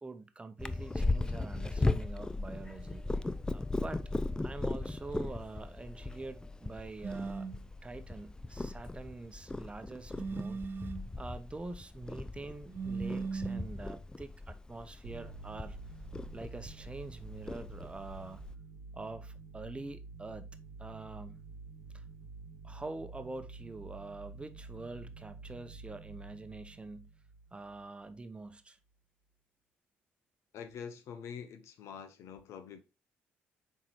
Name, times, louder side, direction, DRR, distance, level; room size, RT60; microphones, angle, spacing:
voice 1, 0.0-3.0 3.5-4.0 4.4-7.5 7.8-10.6 11.2-15.8 16.3-18.4 18.9-20.5 20.8-21.4 21.9-22.0 22.6-27.1 27.5-28.8, right 3 dB, 20° right, 0.8 m, -45 dB
Purr, 0.6-18.5, left 2 dB, 15° left, 0.5 m, -38 dB
sound 1, 7.0-7.6 10.1-11.1 12.7-13.8, right 4 dB, 45° right, 0.5 m, -38 dB
sound 2, 15.0-28.2, right 4 dB, 85° right, 1.0 m, -49 dB
voice 2, 30.5-32.8, left 7 dB, 70° left, 0.9 m, -45 dB
7.4 x 4.6 x 3.1 m
supercardioid pair, 55°, 5 cm